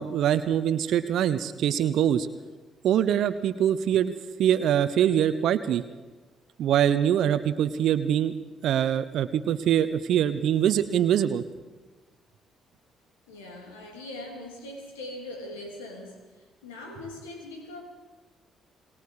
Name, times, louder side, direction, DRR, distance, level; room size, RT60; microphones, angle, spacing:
voice 1, 0.0-2.3 2.8-4.1 4.4-5.8 6.6-8.3 8.6-11.4, right 10 dB, 65° right, 0.9 m, -23 dB
voice 2, 13.3-17.8, left 1 dB, 85° left, 3.2 m, -41 dB
27.5 x 20.5 x 5.0 m
hypercardioid pair, 45°, 0 cm